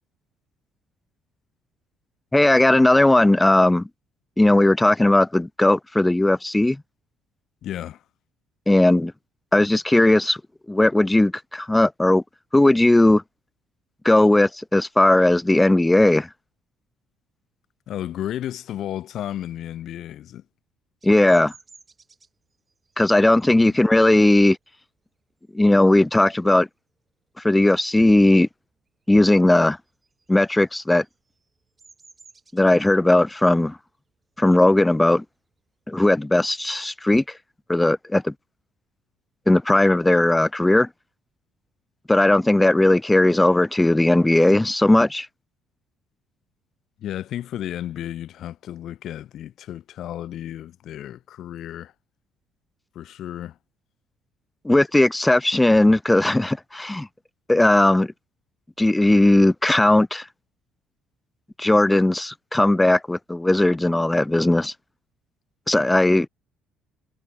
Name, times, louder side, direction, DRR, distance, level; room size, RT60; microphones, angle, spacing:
voice 1, 2.3-3.8 4.4-6.8 8.7-9.1 9.5-10.4 10.7-12.2 12.5-13.2 14.0-16.3 21.0-21.5 23.0-24.6 25.5-26.7 27.4-28.5 29.1-29.8 30.3-31.0 32.5-33.8 34.4-35.2 35.9-37.2 37.7-38.3 39.5-40.9 42.1-45.3 54.6-57.1 57.5-58.1 58.8-60.2 61.6-64.7 65.7-66.3, left 1 dB, 10° left, 0.4 m, -17 dB
voice 2, 7.6-8.0 17.9-20.4 23.5-23.7 47.0-51.9 52.9-53.6, left 11 dB, 60° left, 0.5 m, -33 dB
Bird vocalization bird call bird song, 21.0-26.2 26.6-27.0 27.3-28.5 28.8-36.1, right 4 dB, 25° right, 4.5 m, -56 dB
cardioid pair, 110°, 0 cm